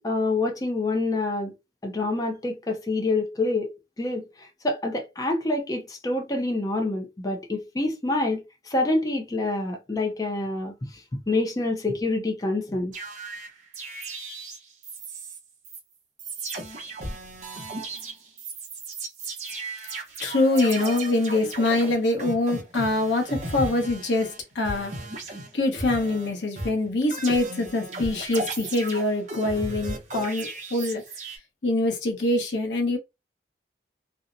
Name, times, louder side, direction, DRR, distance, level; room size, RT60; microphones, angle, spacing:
voice 1, 0.0-1.5 1.8-12.9, left 2 dB, 20° left, 0.4 m, -27 dB
sound 1, 12.9-15.4 15.6-15.8 16.2-24.4 24.6-26.3 26.6-31.4, right 2 dB, 40° right, 0.7 m, -36 dB
voice 2, 20.2-24.9 25.5-31.0 31.6-33.0, left 2 dB, 85° left, 0.8 m, -24 dB
2.7 x 2.0 x 2.4 m
head